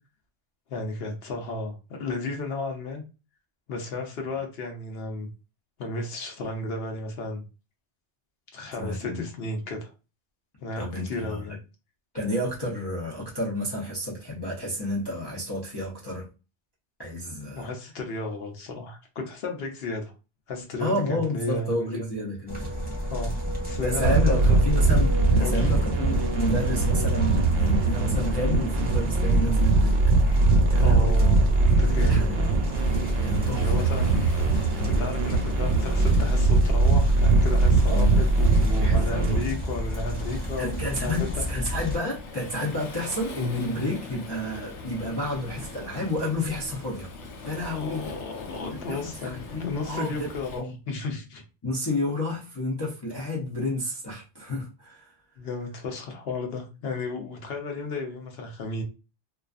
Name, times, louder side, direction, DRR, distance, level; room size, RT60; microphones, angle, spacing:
voice 1, 0.7-3.0 3.7-5.3 5.8-7.4 8.5-9.9 10.6-11.6 17.5-20.1 20.5-22.0 23.1-24.8 25.4-25.7 30.8-32.6 33.6-34.1 34.7-41.2 47.7-51.4 55.4-58.8, left 2 dB, 65° left, 3 dB, 0.8 m, -34 dB
voice 2, 8.8-9.2 10.8-11.6 12.1-16.3 17.0-17.7 20.8-22.7 23.8-30.0 30.7-31.3 31.9-32.4 33.2-34.0 37.9-38.2 38.8-39.3 40.6-47.1 47.4-48.0 48.6-50.3 50.6-50.8 51.6-55.1, left 1 dB, 30° left, -6 dB, 0.5 m, -30 dB
sound 1, 22.5-42.0, equal, 10° right, 0.8 m, -31 dB
sound 2, 24.0-39.4, right 3 dB, 80° right, 0.9 m, -21 dB
Waves surf, 32.7-50.6, left 3 dB, 85° left, 1.0 m, -42 dB
2.5 x 2.3 x 2.3 m, 0.31 s
omnidirectional pair, 1.2 m